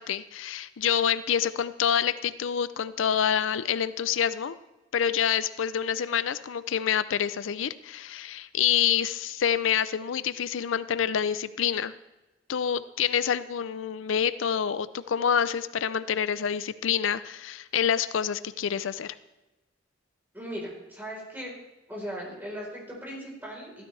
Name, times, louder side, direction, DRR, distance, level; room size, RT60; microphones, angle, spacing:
voice 1, 0.0-4.6 4.9-11.9 12.5-19.1, left 8 dB, 90° left, 15 dB, 0.5 m, -27 dB
voice 2, 20.3-21.5 21.9-23.8, equal, 10° right, -4 dB, 3.9 m, -38 dB
15.0 x 13.0 x 3.3 m, 1.0 s
head